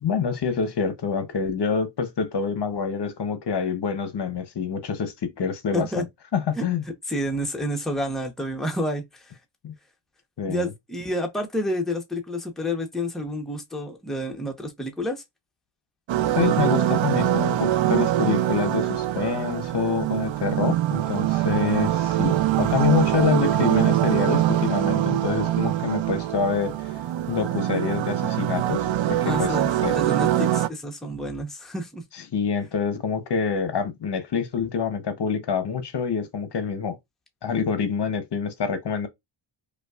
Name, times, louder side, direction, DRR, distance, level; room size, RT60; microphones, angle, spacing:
voice 1, 0.0-6.0 6.3-6.8 9.6-9.7 10.4-10.7 16.3-26.9 27.3-29.6 29.8-29.9 32.3-37.0 37.4-39.1, left 6 dB, 55° left, 0.8 m, -26 dB
voice 2, 5.7-6.0 6.5-6.6 7.1-9.3 10.5-15.2 29.2-32.0, equal, ahead, 0.8 m, -29 dB
sound 1, 16.1-30.7, right 12 dB, 65° right, 0.5 m, -23 dB
5.1 x 2.2 x 2.4 m
cardioid pair, 90°, 49 cm